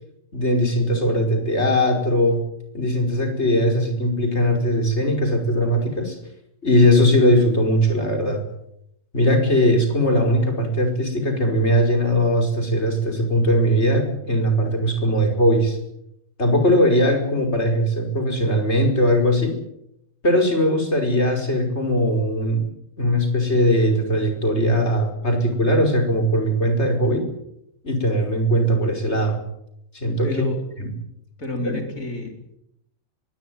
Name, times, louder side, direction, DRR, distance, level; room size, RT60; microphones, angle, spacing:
voice 1, 0.3-2.4 2.7-6.2 6.6-8.4 9.1-15.8 16.4-19.5 20.2-22.6 23.0-27.3 27.8-29.4 29.9-30.3 30.8-30.9 31.6-31.8, equal, 50° left, 5 dB, 5.6 m, -20 dB
voice 2, 30.2-30.6 31.4-32.6, left 1 dB, 70° left, 4 dB, 4.5 m, -29 dB
23.0 x 17.5 x 9.6 m, 0.80 s
omnidirectional pair, 1.5 m